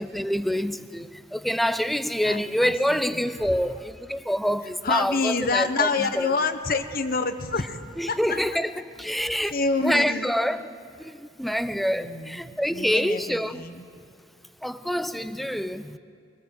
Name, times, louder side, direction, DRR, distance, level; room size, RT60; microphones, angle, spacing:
voice 1, 0.0-5.9 6.2-6.3 8.0-8.7 9.0-9.5 9.8-10.7 11.0-11.1 11.4-13.6 14.6-16.0, equal, ahead, 0.6 m, -26 dB
voice 2, 2.2-3.3 4.8-7.8 8.1-8.6 9.0-9.2 9.5-10.3 11.9-13.8, left 4 dB, 55° left, 1.2 m, -28 dB
23.0 x 23.0 x 7.9 m
head